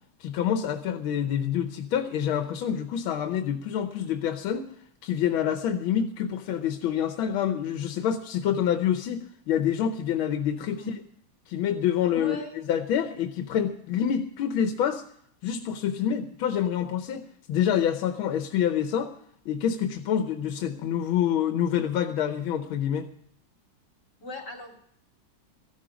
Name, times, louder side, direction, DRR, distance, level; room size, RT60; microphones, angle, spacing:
voice 1, 0.2-4.7 5.0-10.8 11.5-12.4 12.7-15.0 15.4-19.1 19.4-23.1, left 9 dB, 90° left, 7 dB, 1.7 m, -27 dB
voice 2, 12.1-12.6 24.2-24.8, left 2 dB, 55° left, 2 dB, 3.4 m, -38 dB
15.0 x 12.0 x 5.0 m, 0.67 s
omnidirectional pair, 2.2 m